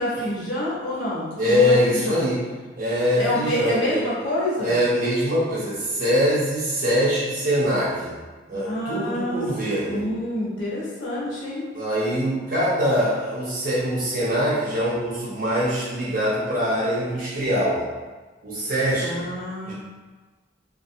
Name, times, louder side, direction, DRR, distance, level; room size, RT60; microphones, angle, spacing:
voice 1, 0.0-2.2 3.2-4.8 8.5-9.4 9.8-11.6 19.0-19.7, left 1 dB, 90° left, -6 dB, 0.9 m, -27 dB
voice 2, 1.4-2.4 2.8-4.0 4.6-8.1 8.5-10.0 11.7-17.8 18.4-19.3 19.7-19.8, equal, 50° right, -8 dB, 0.7 m, -23 dB
2.6 x 2.3 x 2.6 m, 1.3 s
head